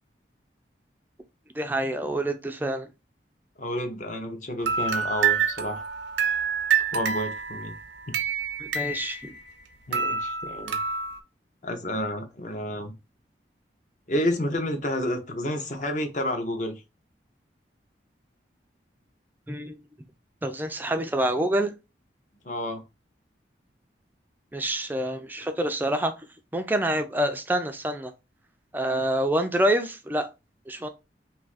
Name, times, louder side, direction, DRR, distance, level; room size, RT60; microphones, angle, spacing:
voice 1, 1.6-2.9 8.6-9.3 19.5-19.7 20.4-21.7 24.5-26.1 26.5-28.1 28.7-30.3 30.7-30.9, right 1 dB, 10° right, 0.3 m, -27 dB
voice 2, 3.6-5.8 6.9-7.8 8.1-8.2 9.9-10.8 11.6-12.9 14.1-16.8 22.4-22.8, left 1 dB, 45° left, 0.6 m, -30 dB
sound 1, 4.6-9.6 9.9-11.2, right 6 dB, 90° right, 0.5 m, -27 dB
2.6 x 2.4 x 3.9 m
head